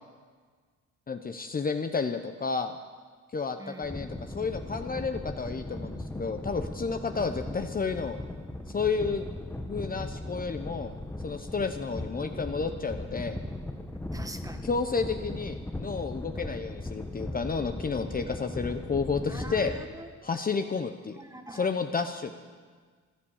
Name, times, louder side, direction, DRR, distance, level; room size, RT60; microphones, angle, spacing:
voice 1, 1.1-2.8 3.3-8.2 8.7-9.2 9.7-10.9 11.2-13.4 14.6-19.7 20.2-21.2 21.5-22.3, left 5 dB, 30° left, 7 dB, 0.8 m, -31 dB
voice 2, 3.6-3.9 14.1-14.7 19.3-20.1 20.3-20.7 21.2-21.7, right 1 dB, 10° right, 7 dB, 1.3 m, -44 dB
sound 1, 3.8-19.8, left 1 dB, 5° left, 1.0 m, -38 dB
14.5 x 11.5 x 7.2 m, 1.6 s
cardioid pair, 90°, 30 cm